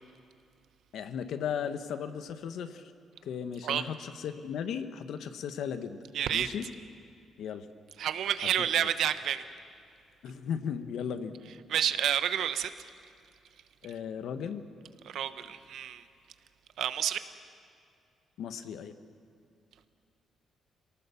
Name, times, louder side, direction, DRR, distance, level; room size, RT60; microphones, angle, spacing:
voice 1, 0.9-2.9 3.2-6.0 6.3-6.7 7.4-7.7 8.8-8.9 10.2-11.4 13.8-14.6 18.4-18.9, left 7 dB, 75° left, 10 dB, 1.3 m, -36 dB
voice 2, 6.1-6.5 8.0-9.4 11.7-12.7 15.1-16.0 16.8-17.2, right 10 dB, 75° right, 11 dB, 1.0 m, -29 dB
27.5 x 18.5 x 7.2 m, 2.4 s
cardioid pair, 140°, 0 cm